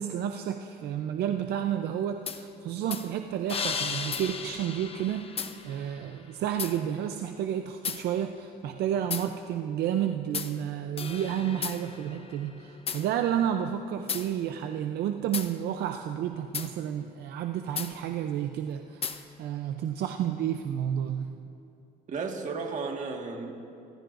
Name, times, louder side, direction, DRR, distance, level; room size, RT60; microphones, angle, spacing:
voice 1, 0.0-5.2 5.6-21.3, right 10 dB, 75° right, 6 dB, 0.6 m, -31 dB
sound 1, 2.3-2.4 2.9-3.1 3.5-6.0 6.6-6.8 7.8-8.0 9.1-9.3 10.3-10.5 11.0-13.0 14.1-14.3 15.3-15.5 16.5-16.7 17.8-17.9 19.0-19.2, left 6 dB, 35° left, 0.8 m, -34 dB
voice 2, 22.1-23.5, right 4 dB, 45° right, 2 dB, 1.7 m, -33 dB
24.5 x 15.0 x 2.6 m, 2.7 s
cardioid pair, 110°, 17 cm